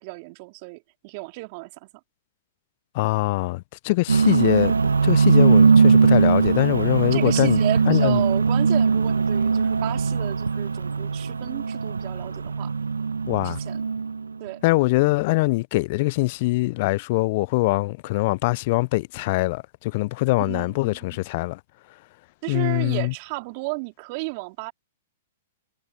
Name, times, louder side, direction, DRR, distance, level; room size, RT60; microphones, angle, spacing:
voice 1, 0.0-1.9 7.1-12.7 13.4-13.8 14.4-14.6 20.4-21.0 22.4-24.7, right 29 dB, 45° right, 3.4 m, -33 dB
voice 2, 2.9-4.7 5.0-7.6 7.9-8.2 13.3-13.6 14.6-21.6 22.5-23.1, left 22 dB, 50° left, 0.4 m, -23 dB
sound 1, 4.1-14.3, right 5 dB, 85° right, 1.2 m, -20 dB
hypercardioid pair, 110°, 0 cm